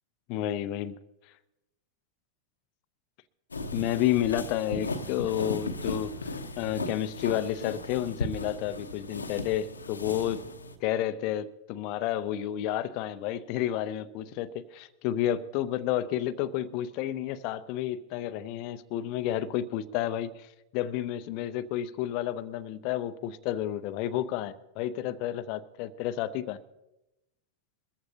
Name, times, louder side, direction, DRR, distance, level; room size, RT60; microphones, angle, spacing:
voice 1, 0.3-1.0 3.7-10.4 10.8-20.5 20.7-26.6, left 12 dB, 45° left, 0.7 m, -31 dB
sound 1, 3.5-10.8, left 2 dB, 75° left, 1.0 m, -36 dB
22.0 x 14.0 x 2.8 m
figure-of-eight pair, 90°, 0 cm